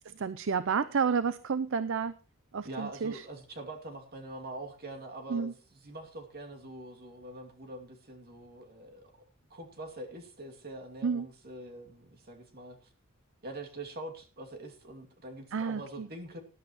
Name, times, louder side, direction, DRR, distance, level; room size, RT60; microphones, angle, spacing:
voice 1, 0.1-2.2 2.5-3.2 5.3-5.5 11.0-11.3 15.5-16.1, right 6 dB, 65° right, 14 dB, 0.5 m, -30 dB
voice 2, 2.6-12.9 13.4-16.4, right 2 dB, 50° right, 3 dB, 2.5 m, -44 dB
19.5 x 11.0 x 3.1 m, 0.34 s
head